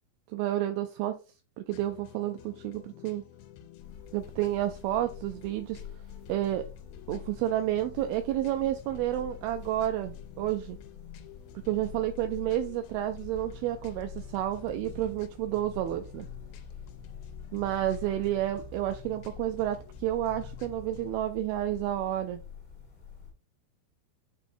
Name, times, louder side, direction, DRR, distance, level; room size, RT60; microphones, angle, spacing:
voice 1, 0.3-1.2 1.6-3.2 4.1-5.8 6.3-6.7 7.1-10.8 11.7-16.3 17.5-22.4, right 13 dB, 80° right, 8 dB, 2.3 m, -30 dB
sound 1, 1.7-21.1, left 7 dB, 80° left, 2.5 m, -51 dB
sound 2, 3.8-23.3, left 7 dB, 30° left, 1.6 m, -46 dB
7.9 x 4.8 x 2.6 m, 0.32 s
omnidirectional pair, 4.5 m